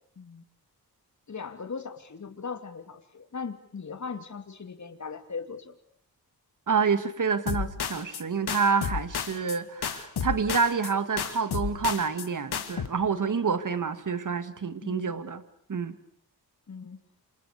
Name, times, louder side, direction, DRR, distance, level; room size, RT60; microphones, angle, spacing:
voice 1, 1.3-5.8 14.8-15.2 16.7-17.0, left 5 dB, 50° left, 8 dB, 2.8 m, -39 dB
voice 2, 6.7-15.4 15.7-15.9, right 5 dB, 55° right, 12 dB, 2.2 m, -28 dB
sound 1, 7.5-8.2 8.5-9.6 9.8-10.9 11.2-12.3 12.5-12.9, left 7 dB, 85° left, 2.2 m, -32 dB
28.5 x 27.5 x 6.9 m, 0.64 s
wide cardioid pair, 100°, 38 cm